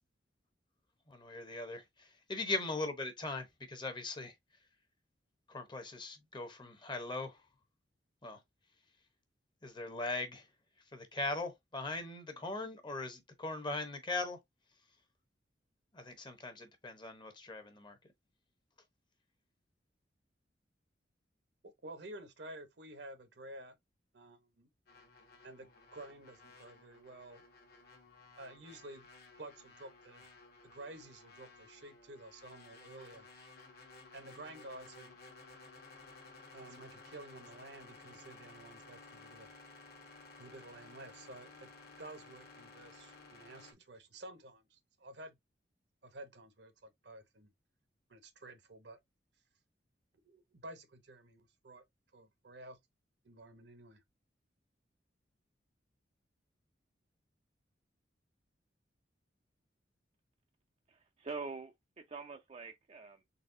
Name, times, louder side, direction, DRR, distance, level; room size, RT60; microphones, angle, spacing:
voice 1, 1.1-4.3 5.5-7.4 8.2-8.4 9.6-10.5 10.9-14.4 15.9-18.0, left 2 dB, 25° left, 0.8 m, -40 dB
voice 2, 21.8-23.8 24.1-24.7 25.4-27.4 28.3-29.1 29.4-30.3 30.6-33.3 34.1-35.2 36.5-39.5 40.4-41.7 42.0-45.4 46.0-47.5 48.1-49.0 50.2-51.8 52.1-52.8 53.2-54.0, right 1 dB, 65° right, 0.9 m, -51 dB
sound 1, 24.9-43.7, left 3 dB, 55° left, 1.2 m, -56 dB
voice 3, 60.9-63.2, right 4 dB, 35° right, 0.4 m, -45 dB
4.1 x 3.3 x 2.6 m
head